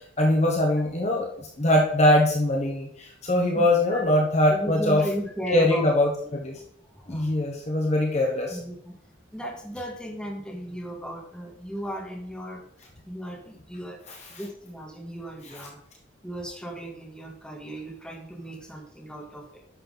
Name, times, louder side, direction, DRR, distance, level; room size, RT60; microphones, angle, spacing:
voice 1, 0.2-5.0 5.5-6.6 7.1-8.6, left 1 dB, 35° left, 0 dB, 1.2 m, -22 dB
voice 2, 3.5-4.0 4.5-5.9 6.2-7.4 8.5-8.9 9.3-12.6 13.1-14.0 14.3-15.8 16.2-19.6, equal, 5° left, -2 dB, 2.1 m, -36 dB
10.5 x 6.6 x 4.0 m, 0.69 s
head